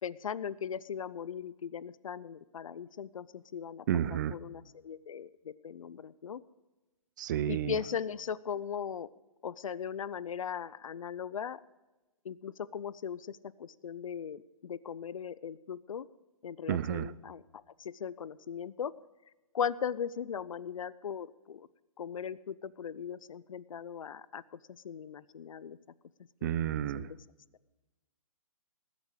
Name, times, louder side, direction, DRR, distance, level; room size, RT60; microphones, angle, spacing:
voice 1, 0.0-3.8 4.1-6.4 7.5-9.1 9.4-11.6 12.2-16.1 16.4-18.9 19.5-21.7 22.0-25.8 26.4-26.5 26.9-27.2, left 7 dB, 70° left, 19 dB, 0.6 m, -38 dB
voice 2, 3.9-4.3 7.2-7.7 16.7-17.1 26.4-27.1, right 11 dB, 35° right, 17 dB, 0.5 m, -31 dB
19.5 x 8.3 x 4.8 m, 1.1 s
hypercardioid pair, 150°, 18 cm